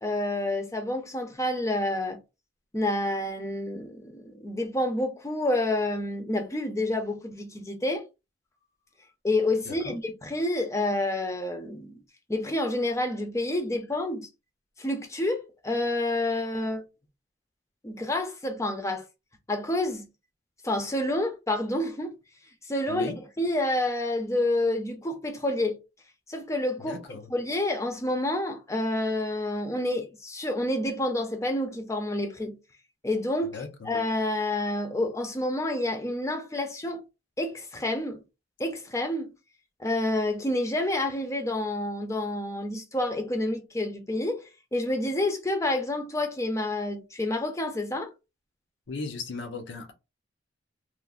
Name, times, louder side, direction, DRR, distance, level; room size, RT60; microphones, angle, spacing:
voice 1, 0.0-2.2 2.7-8.0 9.2-12.0 12.3-14.3 14.8-16.8 17.8-19.0 19.5-20.0 20.6-22.1 22.7-23.1 23.4-25.8 26.3-27.0 27.3-32.5 33.0-37.0 37.4-38.2 38.6-39.3 39.8-48.1, left 1 dB, 15° left, 0.5 m, -28 dB
voice 2, 9.7-10.0 22.9-23.2 26.9-27.3 33.5-33.9 48.9-49.9, left 3 dB, 75° left, 0.7 m, -37 dB
3.1 x 2.1 x 2.4 m
head